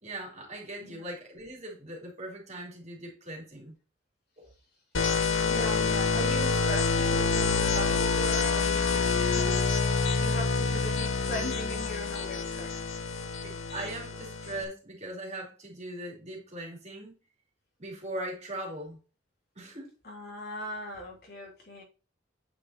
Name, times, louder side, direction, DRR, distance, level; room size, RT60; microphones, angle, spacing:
voice 1, 0.0-3.7 4.4-4.5 13.4-17.1 17.8-19.0 19.6-19.9, right 1 dB, 35° right, 3.7 m, -40 dB
sound 1, 4.9-14.6, left 4 dB, 80° left, 1.3 m, -27 dB
voice 2, 5.4-9.7 10.2-12.8 20.0-21.8, equal, 55° left, 3.3 m, -39 dB
9.1 x 5.6 x 3.0 m
head